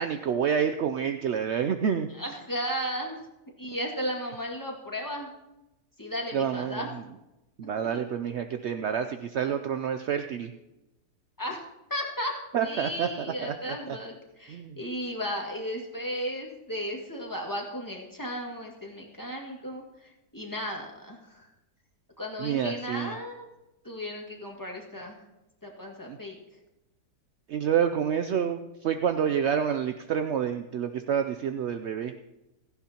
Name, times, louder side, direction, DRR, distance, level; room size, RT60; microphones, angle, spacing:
voice 1, 0.0-2.1 6.3-6.9 7.6-10.5 12.5-14.0 14.5-14.8 22.4-23.1 26.1-26.2 27.5-32.1, right 8 dB, 75° right, 8 dB, 0.6 m, -28 dB
voice 2, 2.1-3.2 3.6-5.3 6.0-6.9 7.9-8.0 11.4-11.6 11.9-12.3 12.6-21.5 22.2-23.5 23.8-25.2 25.6-26.4, equal, 10° left, -1 dB, 2.0 m, -35 dB
17.0 x 15.0 x 2.9 m, 0.95 s
omnidirectional pair, 1.8 m